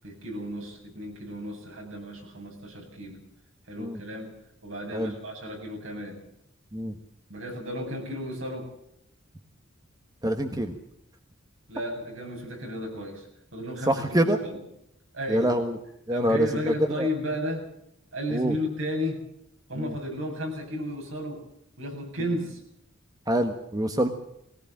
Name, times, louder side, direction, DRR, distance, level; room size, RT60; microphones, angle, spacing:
voice 1, 0.0-3.2 3.7-4.3 4.6-6.2 7.3-8.7 11.7-13.3 13.5-14.6 15.1-15.5 16.1-17.7 18.1-19.2 19.7-21.5 21.8-22.6, equal, 70° right, 2 dB, 7.8 m, -33 dB
voice 2, 10.2-10.8 13.9-14.4 15.3-15.8 16.1-17.1 18.3-18.5 19.8-19.9 23.3-24.1, equal, 20° right, 6 dB, 1.3 m, -25 dB
21.5 x 18.0 x 7.4 m, 0.76 s
head